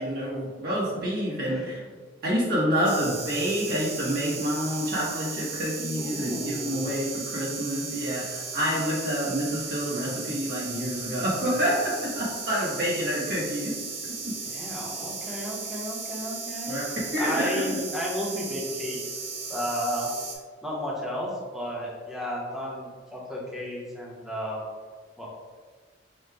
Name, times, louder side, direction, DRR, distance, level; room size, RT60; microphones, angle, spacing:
voice 1, 0.0-1.8 2.2-13.8 14.0-14.3 16.7-16.8 17.1-17.8, equal, 55° right, -6 dB, 1.2 m, -28 dB
voice 2, 1.5-1.8 6.0-7.0 14.4-16.8 17.2-20.1 20.6-24.8 25.2-25.3, equal, ahead, -5 dB, 0.9 m, -33 dB
sound 1, 2.8-20.4, right 4 dB, 85° right, 0.7 m, -36 dB
5.3 x 2.3 x 3.4 m, 1.5 s
head